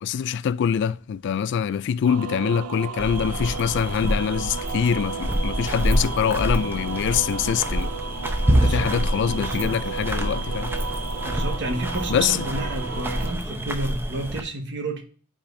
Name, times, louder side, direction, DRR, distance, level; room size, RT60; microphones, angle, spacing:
voice 1, 0.0-7.9 8.5-10.7 12.1-12.4, left 8 dB, 55° left, 0.3 m, -24 dB
sound 1, 2.0-13.3, right 6 dB, 80° right, 0.5 m, -34 dB
sound 2, 3.0-14.4, equal, 10° right, 0.7 m, -27 dB
voice 2, 8.4-9.0 9.3-9.8 11.2-15.0, right 2 dB, 55° right, 1.3 m, -31 dB
9.9 x 5.0 x 2.6 m
head